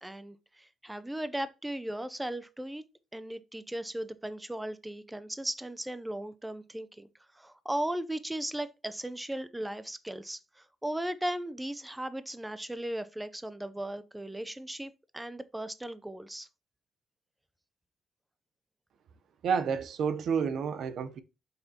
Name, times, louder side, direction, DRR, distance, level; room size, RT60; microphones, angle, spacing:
voice 1, 0.0-2.8 3.1-7.1 7.3-16.5, right 1 dB, 10° right, 0.6 m, -37 dB
voice 2, 19.4-21.2, right 6 dB, 70° right, 0.7 m, -30 dB
7.8 x 5.7 x 2.9 m
cardioid pair, 90°, 0 cm